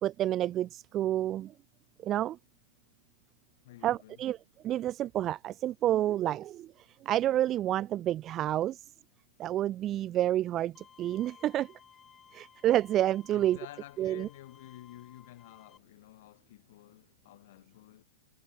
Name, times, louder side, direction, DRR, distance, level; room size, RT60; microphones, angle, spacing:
voice 1, 0.0-1.5 2.0-2.4 3.8-4.4 4.6-6.7 7.1-8.8 9.4-10.7 11.0-11.7 12.3-13.6 14.0-14.3, right 12 dB, 30° right, 0.4 m, -29 dB
voice 2, 3.6-4.3 13.3-18.0, left 15 dB, 60° left, 3.6 m, -51 dB
Bowed string instrument, 10.7-15.8, left 7 dB, 20° left, 3.5 m, -58 dB
hypercardioid pair, 105°, 0 cm